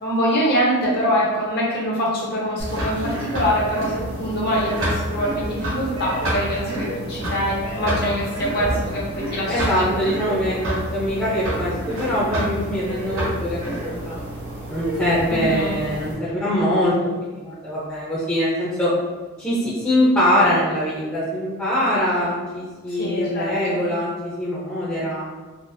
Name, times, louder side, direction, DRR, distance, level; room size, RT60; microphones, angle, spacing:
voice 1, 0.0-10.0 15.3-15.7 22.9-23.8, equal, 45° left, -4 dB, 0.7 m, -24 dB
sound 1, 2.6-16.1, right 1 dB, 60° right, 1.0 m, -28 dB
voice 2, 9.5-14.2 14.7-16.9 17.2-18.9 19.4-25.2, equal, 10° left, -11 dB, 0.6 m, -23 dB
3.9 x 2.1 x 2.6 m, 1.3 s
head